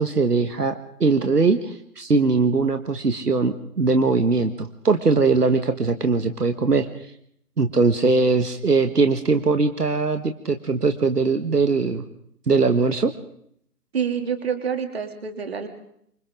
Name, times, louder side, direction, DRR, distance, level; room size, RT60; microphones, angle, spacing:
voice 1, 0.0-6.9 7.6-12.0 12.5-13.1, right 4 dB, 75° right, 7 dB, 1.7 m, -21 dB
voice 2, 13.9-15.7, right 7 dB, 40° right, 6 dB, 3.0 m, -27 dB
27.5 x 25.5 x 3.8 m, 0.69 s
figure-of-eight pair, 150°, 48 cm